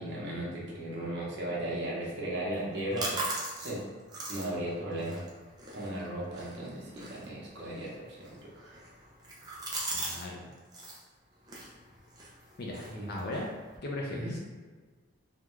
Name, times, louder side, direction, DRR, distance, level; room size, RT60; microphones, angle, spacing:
voice 1, 0.0-3.3 3.6-3.8 4.3-5.3 5.7-8.8 12.9-13.2 14.1-14.3, right 1 dB, 55° right, -5 dB, 0.9 m, -36 dB
sound 1, 2.5-10.3 10.5-11.0 11.4-13.8, right 2 dB, 20° right, 0.5 m, -41 dB
voice 2, 9.9-10.5 12.6-13.5 13.8-14.4, left 2 dB, 50° left, -2 dB, 0.4 m, -38 dB
3.6 x 2.2 x 3.0 m, 1.4 s
head